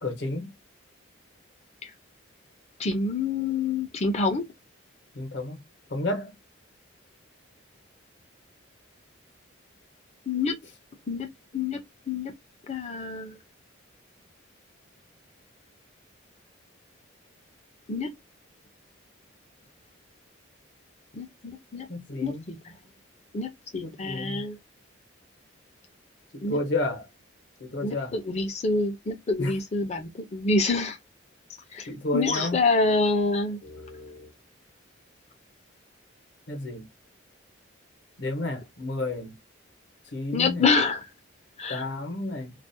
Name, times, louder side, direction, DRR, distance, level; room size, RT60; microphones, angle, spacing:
voice 1, 0.0-0.5 5.1-5.6 5.9-6.3 21.9-22.5 23.8-24.4 26.3-27.1 27.6-28.2 29.4-29.5 31.9-32.6 33.6-34.3 36.5-36.8 38.2-39.3 40.1-40.6 41.7-42.5, left 2 dB, 60° left, 0.8 m, -31 dB
voice 2, 2.8-4.4 10.3-10.6 11.1-11.3 11.5-11.8 12.1-12.3 12.7-13.4 17.9-18.1 21.1-21.9 22.2-22.6 23.3-23.5 23.7-24.6 26.4-26.6 27.8-31.0 31.7-31.9 32.1-33.6 40.3-41.0 41.6-41.8, left 3 dB, 30° left, 0.4 m, -26 dB
2.4 x 2.0 x 2.6 m
head